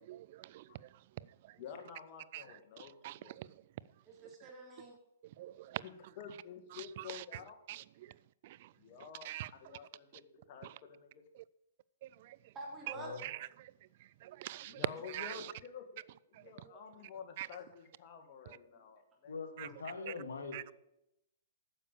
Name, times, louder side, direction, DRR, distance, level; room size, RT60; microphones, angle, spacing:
voice 1, 0.0-0.9 1.2-1.6 2.3-2.4 2.8-3.5 4.4-4.5 5.4-5.8 6.7-7.2 7.7-8.1 8.4-8.7 9.2-9.8 10.6-10.8 11.4-11.5 12.0-12.4 13.2-13.5 14.2-15.5 16.3-16.4 17.4-17.5 18.5-18.6 19.6-19.7 20.1-20.2 20.5-20.6, right 15 dB, 50° right, 0.3 m, -44 dB
voice 2, 1.6-3.4 5.8-7.5 8.8-11.2 14.7-19.3, left 7 dB, 45° left, 1.9 m, -50 dB
voice 3, 4.1-5.0 12.5-13.3 16.6-16.8 18.5-18.8, right 1 dB, 20° right, 3.7 m, -48 dB
voice 4, 19.2-20.7, left 4 dB, 80° left, 2.1 m, -43 dB
9.9 x 6.9 x 7.1 m
hypercardioid pair, 125°, 0 cm